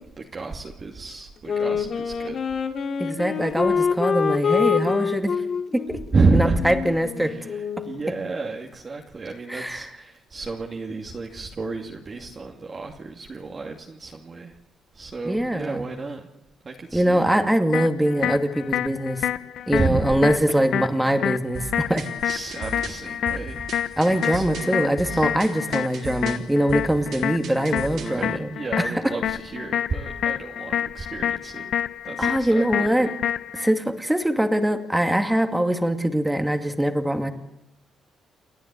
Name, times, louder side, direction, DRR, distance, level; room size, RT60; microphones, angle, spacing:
voice 1, 0.2-2.4 6.1-6.6 7.2-14.5 14.9-16.3 16.6-17.3 19.7-20.2 21.1-21.2 21.8-21.9 22.2-23.8 24.1-25.3 27.9-31.7 32.0-33.2, right 3 dB, 35° right, 0 dB, 2.6 m, -30 dB
Wind instrument woodwind instrument, 1.5-8.0, left 6 dB, 55° left, 2.2 m, -26 dB
voice 2, 3.0-5.3 5.7-6.0 6.3-7.3 9.5-9.8 15.2-15.9 16.9-19.3 19.7-22.0 24.0-28.5 32.2-33.1 33.5-37.3, right 1 dB, 5° right, 6 dB, 2.4 m, -23 dB
sound 1, 17.7-33.7, left 10 dB, 70° left, 0.7 m, -29 dB
sound 2, 21.5-28.2, right 5 dB, 70° right, 3.4 m, -38 dB
29.5 x 10.5 x 9.7 m, 0.87 s
cardioid pair, 90°, 0 cm